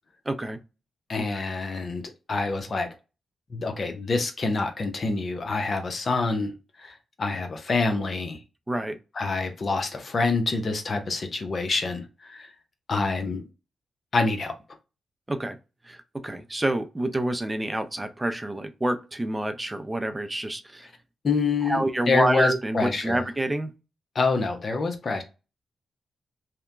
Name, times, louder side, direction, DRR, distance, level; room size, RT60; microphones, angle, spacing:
voice 1, 0.3-0.6 1.3-1.4 8.7-9.0 15.3-15.6 15.8-16.0 16.2-20.9 21.7-23.7, right 1 dB, 20° right, 0.5 m, -27 dB
voice 2, 1.1-2.0 2.3-2.9 3.5-6.5 6.8-8.4 9.2-12.5 12.9-13.4 14.1-14.5 21.2-23.2 24.1-25.2, left 3 dB, 55° left, 0.7 m, -26 dB
2.8 x 2.1 x 2.5 m
supercardioid pair, 45°, 0 cm